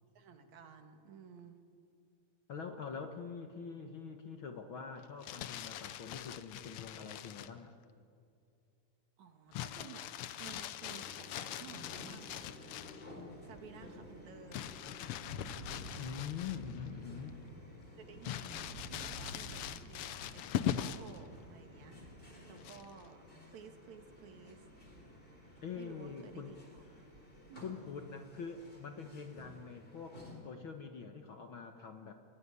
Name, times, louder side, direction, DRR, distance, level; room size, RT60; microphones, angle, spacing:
voice 1, 0.1-1.6 9.2-10.1 10.4-12.5 13.4-14.8 17.9-24.6 25.4-26.8 27.5-27.7, right 6 dB, 70° right, 6 dB, 3.0 m, -55 dB
voice 2, 2.5-7.7 16.0-17.4 25.6-26.6 27.6-32.1, left 6 dB, 55° left, 5 dB, 1.7 m, -45 dB
Crumpling crinkling, 5.0-7.6 9.5-13.1 14.5-16.9 17.3-17.4 18.2-21.2 22.6-23.1, left 11 dB, 75° left, 1.4 m, -41 dB
sound 1, 10.8-30.4, left 1 dB, 15° left, 4.3 m, -55 dB
Thunder, 12.1-29.4, right 1 dB, 35° right, 1.5 m, -54 dB
30.0 x 17.0 x 9.8 m, 2.4 s
omnidirectional pair, 3.5 m